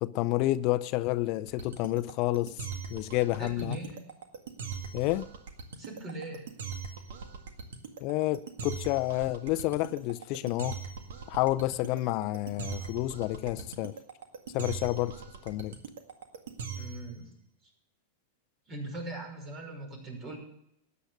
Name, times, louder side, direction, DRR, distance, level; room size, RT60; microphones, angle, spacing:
voice 1, 0.0-3.8 4.9-5.3 8.0-10.8 11.3-14.0 14.5-15.8, left 17 dB, 50° left, 0.5 m, -30 dB
sound 1, 1.5-17.1, right 6 dB, 75° right, 1.8 m, -40 dB
voice 2, 3.4-4.0 5.8-6.5 16.8-17.3 17.6-17.7 18.7-20.4, right 1 dB, 35° right, 5.7 m, -40 dB
13.5 x 9.5 x 6.6 m
hypercardioid pair, 115°, 0 cm